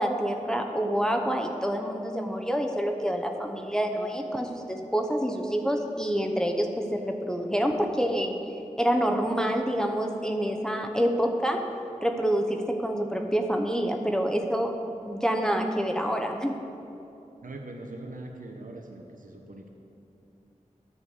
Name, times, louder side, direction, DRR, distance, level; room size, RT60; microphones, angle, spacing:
voice 1, 0.0-8.3 8.8-11.6 12.0-14.7 15.0-16.6, equal, 5° left, 2 dB, 0.9 m, -27 dB
voice 2, 17.4-19.7, right 2 dB, 85° right, 2 dB, 1.0 m, -41 dB
10.5 x 5.1 x 8.3 m, 2.8 s
wide cardioid pair, 40°, 13 cm